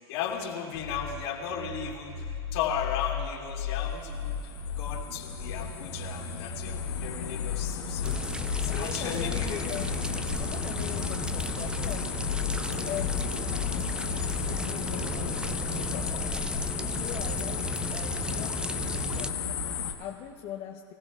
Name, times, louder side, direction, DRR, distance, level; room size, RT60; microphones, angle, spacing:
voice 1, 0.1-2.1 2.5-4.4 4.8-8.1 8.5-9.6, left 8 dB, 70° left, -2 dB, 2.5 m, -35 dB
sound 1, 0.7-15.7, left 6 dB, 70° right, 1.7 m, -36 dB
sound 2, 3.7-19.9, left 7 dB, 85° left, 1.2 m, -34 dB
sound 3, 8.0-19.3, right 2 dB, 5° right, 0.5 m, -36 dB
voice 2, 8.7-10.0 10.4-12.1 12.9-13.3 13.8-20.9, left 10 dB, 45° left, 1 dB, 0.8 m, -41 dB
24.0 x 15.0 x 2.4 m, 2.4 s
hypercardioid pair, 105°, 14 cm